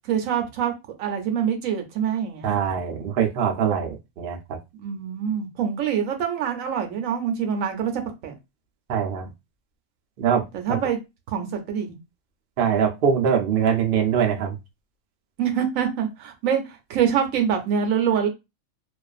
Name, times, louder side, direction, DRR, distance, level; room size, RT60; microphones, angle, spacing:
voice 1, 0.1-0.7 1.0-2.6 4.8-7.9 8.2-8.3 10.5-11.0 11.3-11.9 15.4-18.3, right 8 dB, 75° right, 1.0 m, -25 dB
voice 2, 2.4-4.6 8.9-9.3 10.2-10.8 12.6-14.6, right 7 dB, 60° right, 0.6 m, -23 dB
2.5 x 2.4 x 2.4 m
omnidirectional pair, 1.5 m